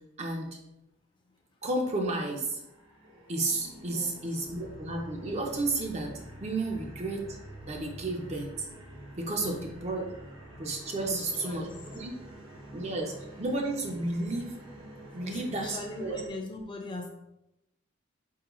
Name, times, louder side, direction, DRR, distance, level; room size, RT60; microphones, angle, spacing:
voice 1, 0.2-0.5 1.6-2.6 3.3-7.4 7.7-8.7 9.2-10.0 10.6-12.1 12.7-14.6 15.1-16.2, right 2 dB, 30° right, 1 dB, 0.5 m, -32 dB
sound 1, 2.2-16.3, right 1 dB, 85° right, 1.1 m, -47 dB
voice 2, 3.9-4.4 9.4-9.7 11.0-11.9 15.2-17.1, left 2 dB, 25° left, 2 dB, 0.6 m, -40 dB
4.1 x 3.8 x 3.0 m, 0.87 s
head